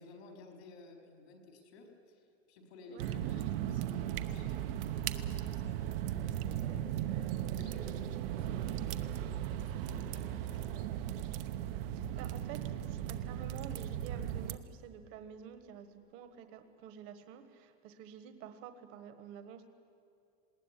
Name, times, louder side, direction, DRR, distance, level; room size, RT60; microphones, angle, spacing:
voice 1, 0.0-10.9, left 3 dB, 75° left, 2 dB, 4.7 m, -55 dB
voice 2, 2.9-3.3 6.4-6.8 11.9-19.6, right 8 dB, 45° right, 9 dB, 1.5 m, -50 dB
sound 1, 3.0-14.6, right 11 dB, 60° right, 1.0 m, -37 dB
sound 2, 5.3-16.6, right 8 dB, 80° right, 3.0 m, -55 dB
20.0 x 18.0 x 10.0 m, 2.4 s
supercardioid pair, 160°, 32 cm